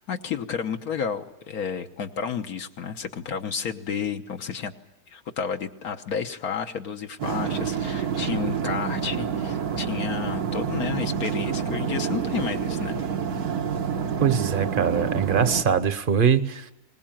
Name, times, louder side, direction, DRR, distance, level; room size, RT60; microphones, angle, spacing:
voice 1, 0.0-4.7 5.1-13.0, left 7 dB, 75° left, 5 dB, 1.6 m, -31 dB
sound 1, 7.2-15.6, right 7 dB, 85° right, 1.8 m, -28 dB
voice 2, 14.2-16.7, right 7 dB, 40° right, 13 dB, 0.9 m, -22 dB
21.5 x 19.5 x 8.9 m, 0.93 s
omnidirectional pair, 1.6 m